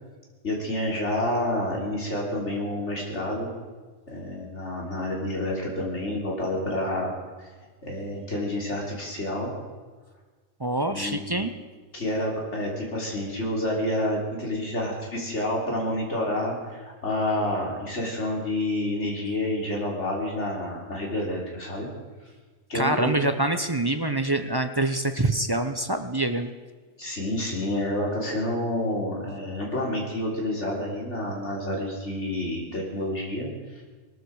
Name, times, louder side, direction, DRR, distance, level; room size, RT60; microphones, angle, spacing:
voice 1, 0.4-3.5 4.1-7.1 7.8-9.5 10.9-11.3 11.9-21.9 22.7-23.2 27.0-33.8, left 1 dB, 60° left, -2 dB, 3.8 m, -29 dB
voice 2, 10.6-11.5 22.7-26.5, right 2 dB, 25° right, 8 dB, 0.6 m, -25 dB
20.0 x 13.5 x 4.8 m, 1.4 s
omnidirectional pair, 1.3 m